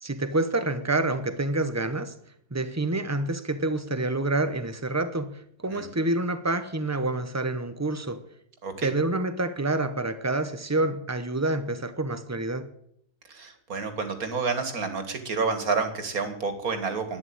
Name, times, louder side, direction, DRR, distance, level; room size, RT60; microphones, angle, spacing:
voice 1, 0.0-2.1 2.5-8.2 8.8-12.7, right 2 dB, 25° right, 0.3 m, -27 dB
voice 2, 8.6-8.9 13.3-17.2, right 4 dB, 55° right, 2.4 m, -29 dB
12.0 x 9.7 x 8.7 m
omnidirectional pair, 1.8 m